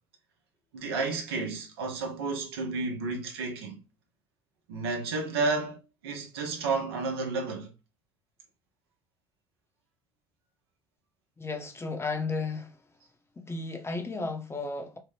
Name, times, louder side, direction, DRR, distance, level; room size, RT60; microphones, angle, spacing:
voice 1, 0.7-3.8 4.7-7.7, right 3 dB, 85° right, 0.7 m, -31 dB
voice 2, 11.4-12.8 13.4-15.0, left 3 dB, 20° left, 0.7 m, -34 dB
2.9 x 2.1 x 3.3 m
hypercardioid pair, 65°, 13 cm